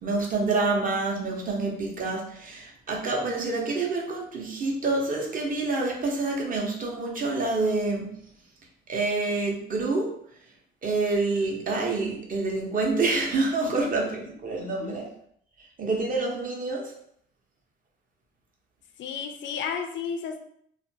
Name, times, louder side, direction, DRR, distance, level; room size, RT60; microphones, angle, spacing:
voice 1, 0.0-8.1 8.9-10.1 10.8-15.1 15.8-16.9, right 3 dB, 45° right, 0.7 m, -27 dB
voice 2, 13.6-14.1 14.8-15.0 19.0-20.4, left 6 dB, 70° left, 0.4 m, -33 dB
2.4 x 2.2 x 2.7 m
cardioid pair, 90°, 20 cm